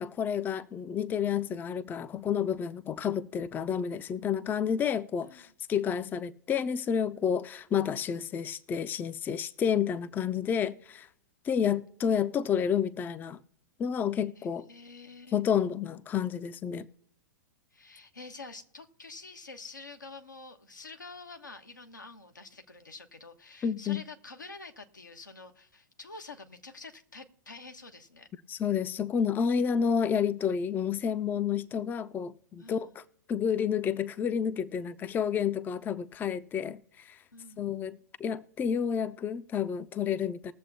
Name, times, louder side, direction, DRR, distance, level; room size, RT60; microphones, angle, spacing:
voice 1, 0.0-11.1 11.4-13.4 13.8-14.7 15.3-16.9 23.6-24.0 28.5-33.0 33.3-37.2 37.6-40.5, left 7 dB, 20° left, 0.4 m, -30 dB
voice 2, 14.4-15.4 17.7-28.3 32.6-32.9 37.3-37.7, left 3 dB, 90° left, 1.2 m, -47 dB
20.5 x 7.3 x 2.7 m
figure-of-eight pair, 105°, 10 cm